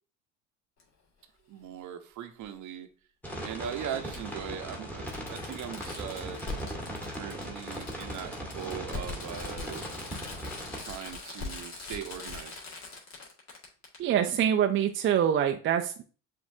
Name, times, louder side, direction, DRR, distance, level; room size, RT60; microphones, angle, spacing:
Fireworks, 0.8-0.9 2.4-2.5 4.1-4.2 4.7-4.8 5.1-14.0 14.3-14.4, left 3 dB, 45° left, 1.7 m, -41 dB
voice 1, 1.5-2.9 3.4-6.4 7.1-9.8 10.7-12.6, right 9 dB, 50° right, 7 dB, 0.8 m, -40 dB
sound 1, 3.2-10.8, equal, 5° left, 1.4 m, -39 dB
voice 2, 14.0-16.0, right 9 dB, 35° right, 5 dB, 0.4 m, -25 dB
7.2 x 2.6 x 2.7 m, 0.39 s
hypercardioid pair, 70°, 37 cm